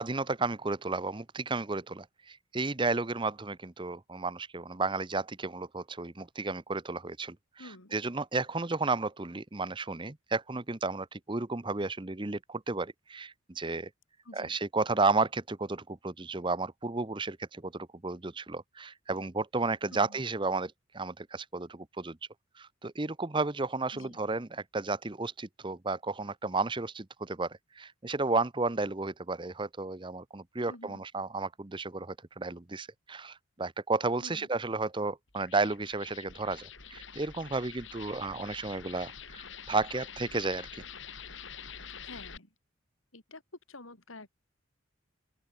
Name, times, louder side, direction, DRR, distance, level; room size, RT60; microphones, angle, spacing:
voice 1, 0.0-13.9 14.3-22.2 22.6-40.8, right 3 dB, 25° right, 0.8 m, -33 dB
voice 2, 7.6-8.0 14.2-14.6 19.9-20.2 23.9-24.3 30.7-31.0 34.2-34.5 42.0-42.5 43.1-43.4 43.7-44.3, left 2 dB, 85° left, 4.2 m, -49 dB
sound 1, 35.3-42.4, left 7 dB, 70° left, 7.4 m, -46 dB
open air
head